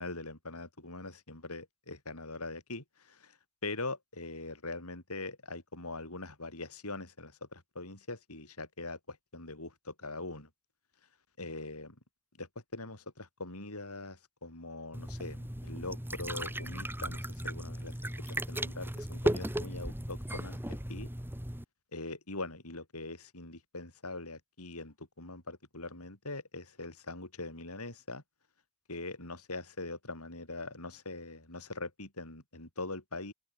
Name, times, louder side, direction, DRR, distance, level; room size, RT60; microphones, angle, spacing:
voice 1, 0.0-3.3 3.6-10.5 11.4-12.0 12.4-17.9 18.3-21.1 21.9-28.2 28.9-33.3, left 2 dB, 75° left, 7.9 m, -42 dB
sound 1, 14.9-21.6, right 1 dB, 10° right, 2.3 m, -36 dB
open air
head